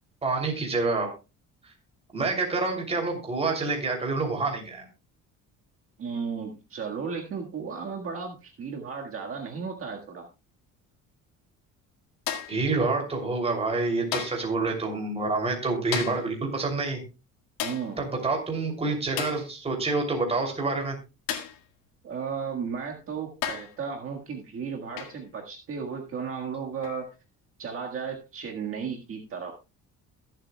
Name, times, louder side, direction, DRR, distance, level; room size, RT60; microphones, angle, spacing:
voice 1, 0.2-1.1 2.1-4.9 12.5-17.0 18.0-21.0, right 3 dB, 20° right, 1 dB, 3.0 m, -27 dB
voice 2, 6.0-10.3 17.6-18.0 22.0-27.1 27.6-29.5, right 6 dB, 40° right, 1 dB, 1.7 m, -34 dB
sound 1, 12.3-12.7 14.1-14.5 15.9-16.3 17.6-17.9 19.2-19.5 21.3-21.6 22.7-22.8 23.4-23.8 25.0-25.2 26.8-27.0, left 10 dB, 90° left, 1.9 m, -33 dB
22.0 x 7.8 x 2.3 m, 0.28 s
cardioid pair, 145°, 33 cm